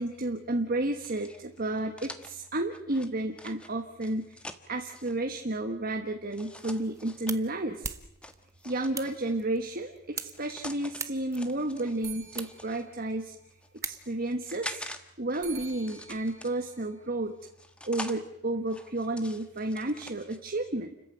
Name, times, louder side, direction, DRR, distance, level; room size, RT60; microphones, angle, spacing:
voice 1, 0.0-7.9 8.6-13.3 13.8-14.9 15.2-17.4 17.8-20.9, right 2 dB, 40° right, 4 dB, 1.4 m, -32 dB
sound 1, 1.0-5.2 6.3-7.4 8.2-9.4 10.1-11.0 11.3-12.8 13.5-15.0 15.3-16.8 17.4-18.2 18.7-20.4, left 1 dB, 5° left, 1.4 m, -45 dB
sound 2, 6.6-14.4, right 5 dB, 15° right, 1.1 m, -43 dB
sound 3, 11.8-13.7 15.4-17.8, right 10 dB, 70° right, 3.8 m, -49 dB
29.5 x 14.5 x 9.2 m, 0.84 s
head